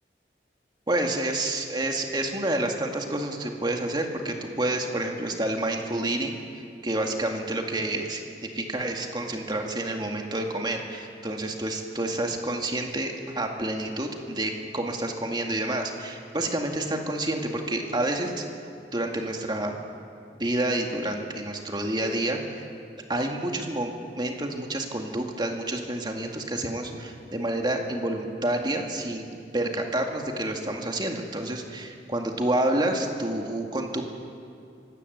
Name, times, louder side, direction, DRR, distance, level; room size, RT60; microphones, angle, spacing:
voice 1, 0.9-6.4 6.8-18.4 18.9-19.8 20.4-22.4 23.1-23.9 24.2-29.3 29.5-34.0, right 1 dB, 25° right, 2 dB, 2.1 m, -29 dB
24.5 x 16.5 x 8.1 m, 2.4 s
head